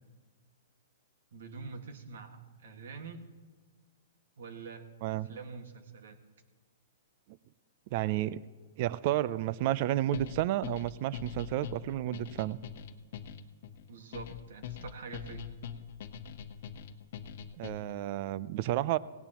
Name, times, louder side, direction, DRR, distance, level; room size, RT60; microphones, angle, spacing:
voice 1, 1.3-3.3 4.4-6.2 13.9-15.4, right 4 dB, 70° right, 6 dB, 1.8 m, -45 dB
voice 2, 7.9-8.4 8.8-12.6 17.6-19.0, right 14 dB, 50° right, 19 dB, 0.5 m, -31 dB
sound 1, 10.1-18.0, left 8 dB, 60° left, 0.9 m, -43 dB
17.5 x 17.5 x 3.0 m, 1.4 s
hypercardioid pair, 130°, 0 cm